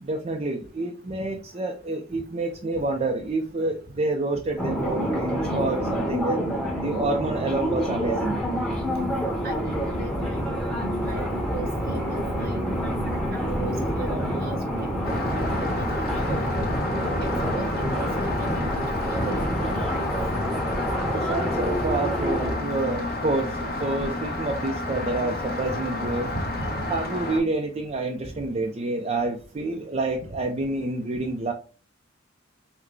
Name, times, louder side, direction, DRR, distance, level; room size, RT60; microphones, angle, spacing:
voice 1, 0.0-6.4 6.8-8.4 21.1-26.3 26.9-31.5, right 2 dB, 35° right, 0.5 m, -28 dB
sound 1, 4.6-22.6, equal, 5° left, 0.9 m, -27 dB
voice 2, 9.4-10.4 11.1-12.7 13.1-14.9 15.3-16.5 17.2-18.8 19.1-20.0 26.0-26.7, right 2 dB, 50° right, 1.0 m, -38 dB
Rain, 15.0-27.4, left 2 dB, 50° left, 1.0 m, -31 dB
5.7 x 2.2 x 3.1 m
head